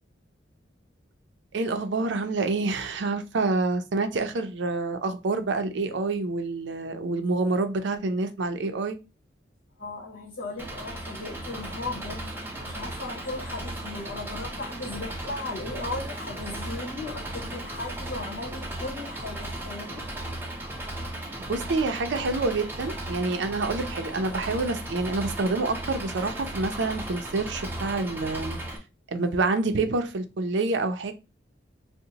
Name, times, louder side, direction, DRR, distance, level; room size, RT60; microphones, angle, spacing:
voice 1, 1.5-9.0 21.5-28.6 29.1-31.1, right 3 dB, 70° right, 0.5 m, -27 dB
voice 2, 9.8-12.3 12.6-20.0, left 2 dB, 80° left, 1.0 m, -37 dB
Engine, 10.6-28.8, right 1 dB, 10° right, 0.4 m, -36 dB
2.8 x 2.1 x 3.8 m
head